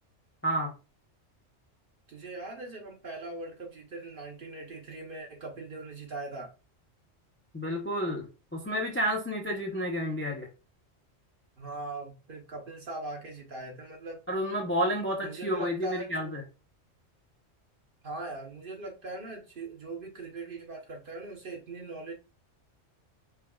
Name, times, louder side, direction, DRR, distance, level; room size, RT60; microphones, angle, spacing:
voice 1, 2.1-6.5 11.6-14.2 15.2-16.3 18.0-22.1, right 2 dB, 50° right, 1.0 m, -40 dB
voice 2, 7.5-8.3 8.5-10.5 14.3-16.4, equal, 20° left, 0.3 m, -30 dB
4.5 x 2.3 x 2.2 m
omnidirectional pair, 1.3 m